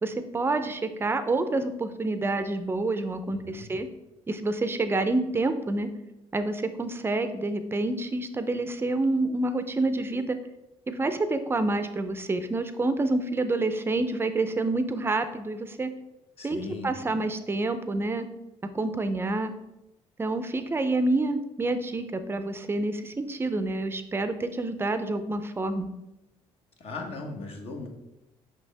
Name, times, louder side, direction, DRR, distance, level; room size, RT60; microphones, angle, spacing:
voice 1, 0.0-3.9 4.3-5.9 6.3-10.4 10.9-15.9 16.4-18.3 18.7-19.5 20.2-25.9, right 2 dB, 20° right, 10 dB, 0.5 m, -28 dB
voice 2, 3.3-3.7 16.4-16.9 26.8-27.9, left 3 dB, 55° left, 2 dB, 1.3 m, -38 dB
6.1 x 5.5 x 3.3 m, 0.92 s
cardioid pair, 120°, 12 cm